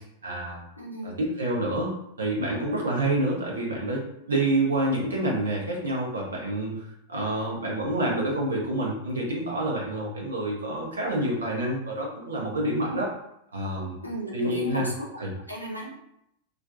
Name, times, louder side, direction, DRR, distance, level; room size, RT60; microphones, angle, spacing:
voice 1, 0.2-0.6 1.0-1.9 2.2-13.1 13.5-14.0 14.3-14.9 15.2-15.3, right 1 dB, 70° right, -2 dB, 0.7 m, -28 dB
voice 2, 0.8-1.2 7.1-7.5 14.0-15.1 15.5-15.9, equal, 90° left, -2 dB, 0.5 m, -34 dB
2.4 x 2.2 x 2.5 m, 0.78 s
figure-of-eight pair, 90°, 0 cm